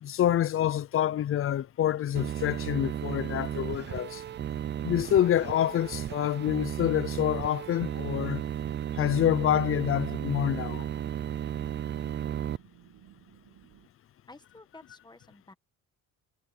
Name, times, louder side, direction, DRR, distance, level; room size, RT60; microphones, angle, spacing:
voice 1, 0.0-4.2 4.8-8.4 8.9-10.8, left 11 dB, 40° left, 0.4 m, -27 dB
sound 1, 1.1-13.9, right 12 dB, 85° right, 2.0 m, -57 dB
sound 2, 2.1-12.6, right 10 dB, 35° right, 0.4 m, -34 dB
voice 2, 14.3-15.5, left 2 dB, 10° left, 1.4 m, -52 dB
cardioid pair, 150°, 35 cm